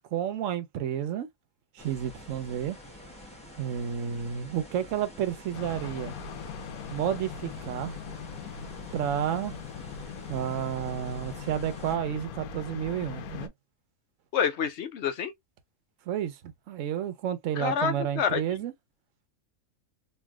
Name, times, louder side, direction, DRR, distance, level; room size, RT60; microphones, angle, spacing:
voice 1, 0.1-1.3 1.7-2.8 3.6-6.1 6.9-8.0 8.9-9.5 10.3-13.5 16.1-18.7, right 9 dB, 65° right, 0.9 m, -31 dB
sound 1, 1.8-12.0, left 1 dB, 5° left, 0.9 m, -48 dB
sound 2, 5.5-13.5, left 6 dB, 80° left, 1.1 m, -40 dB
voice 2, 14.3-15.3 17.6-18.6, left 7 dB, 60° left, 0.7 m, -28 dB
3.1 x 2.6 x 2.2 m
omnidirectional pair, 1.5 m